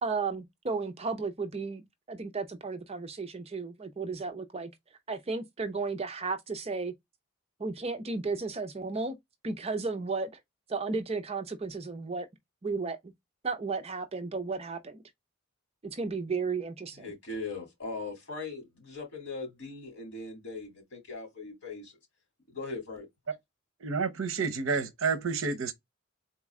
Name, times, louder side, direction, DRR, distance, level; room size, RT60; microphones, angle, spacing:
voice 1, 0.0-4.7 5.1-6.9 7.6-9.2 9.4-10.4 10.7-12.3 12.6-13.1 13.4-15.0 15.8-17.1, right 4 dB, 30° right, 0.5 m, -34 dB
voice 2, 16.9-22.0 22.5-23.1, left 3 dB, 55° left, 2.9 m, -40 dB
voice 3, 23.8-25.7, right 5 dB, 65° right, 0.7 m, -30 dB
4.0 x 3.0 x 3.5 m
head